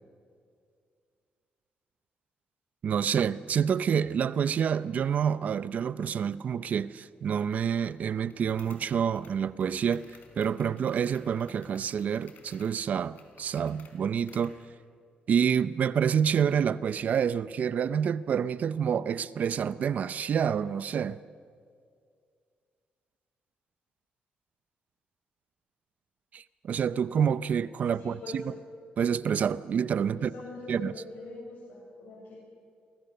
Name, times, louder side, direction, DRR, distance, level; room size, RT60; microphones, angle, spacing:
voice 1, 2.8-10.0 10.4-14.5 15.3-21.2 26.3-28.5 29.0-30.3 30.7-30.9, right 7 dB, 55° right, 0.6 m, -28 dB
sound 1, 7.5-14.6, left 5 dB, 65° left, 4.0 m, -57 dB
voice 2, 28.0-28.4 30.1-32.4, left 3 dB, 90° left, 6.9 m, -43 dB
29.5 x 23.5 x 6.8 m
cardioid pair, 125°, 3 cm